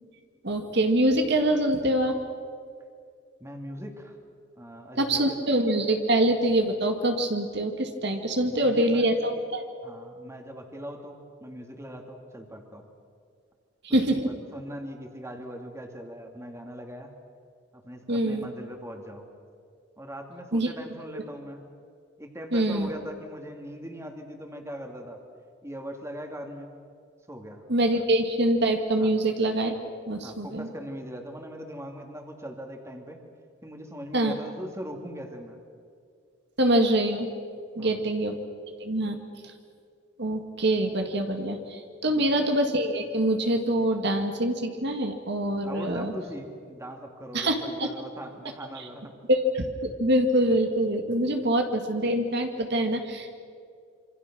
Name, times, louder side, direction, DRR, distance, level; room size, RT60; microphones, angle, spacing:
voice 1, 0.4-2.2 5.0-9.6 13.8-14.3 18.1-18.5 20.5-20.7 21.1-21.2 22.5-22.9 27.7-29.7 30.1-30.7 34.1-34.3 36.6-37.3 37.8-38.4 38.8-39.2 39.4-39.5 40.2-46.1 47.3-47.9 48.8-48.9 49.3-53.4, right 1 dB, 60° right, 5 dB, 2.0 m, -25 dB
voice 2, 3.4-4.1 4.6-5.5 8.4-9.1 9.8-12.9 14.0-17.1 17.7-19.3 20.0-21.6 22.2-25.2 25.6-26.7 27.3-27.6 27.9-28.0 29.0-29.1 30.2-33.2 33.6-35.6 37.8-38.0 42.0-42.3 45.6-49.1, equal, 15° right, 3 dB, 2.6 m, -40 dB
27.0 x 26.0 x 6.2 m, 2.3 s
head